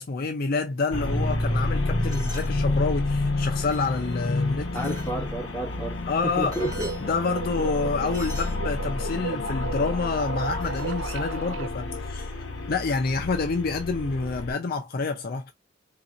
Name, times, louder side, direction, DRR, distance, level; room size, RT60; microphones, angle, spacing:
voice 1, 0.0-5.0 6.1-6.6 7.0-15.5, left 4 dB, 55° left, 0.5 m, -28 dB
sound 1, 0.9-14.5, left 2 dB, 80° left, 0.9 m, -29 dB
sound 2, 2.0-2.5 3.2-4.1 4.7-5.1 6.2-6.3 6.5-7.0 8.1-8.6 10.4-10.9, equal, 20° right, 1.7 m, -42 dB
voice 2, 4.7-6.9 7.6-7.7, right 1 dB, 10° left, 1.3 m, -31 dB
sound 3, 6.5-11.7, right 7 dB, 70° right, 0.4 m, -35 dB
3.8 x 2.7 x 2.4 m
head